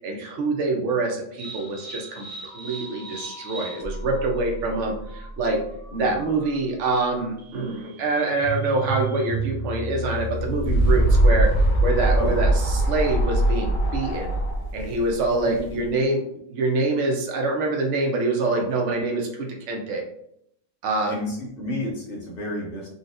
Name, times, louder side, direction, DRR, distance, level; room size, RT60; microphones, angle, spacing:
voice 1, 0.0-2.3 2.5-5.6 6.0-11.5 11.8-14.3 14.7-16.2 16.5-20.0 20.8-21.1, right 3 dB, 70° right, 1 dB, 1.0 m, -25 dB
sound 1, 1.4-12.0, right 2 dB, 50° right, 0.4 m, -35 dB
voice 2, 5.9-6.2 12.1-12.6 15.4-15.9 18.5-18.7 21.1-22.9, left 1 dB, 50° left, -2 dB, 0.8 m, -31 dB
sound 2, 10.2-15.8, right 1 dB, 90° left, 1.2 m, -21 dB
3.9 x 2.4 x 2.5 m, 0.73 s
omnidirectional pair, 1.4 m